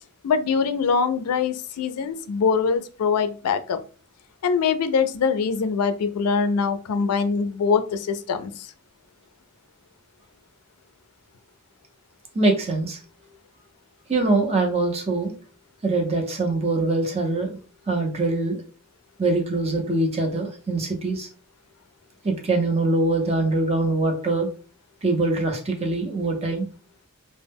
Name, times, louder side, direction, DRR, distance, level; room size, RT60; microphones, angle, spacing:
voice 1, 0.2-3.8 4.4-8.7, left 5 dB, 80° left, 11 dB, 0.4 m, -23 dB
voice 2, 12.3-13.0 14.1-15.3 15.8-17.6 17.9-18.6 19.2-21.3 22.2-24.5 25.0-26.7, right 2 dB, 30° right, 2 dB, 0.6 m, -23 dB
2.1 x 2.1 x 3.4 m, 0.37 s
head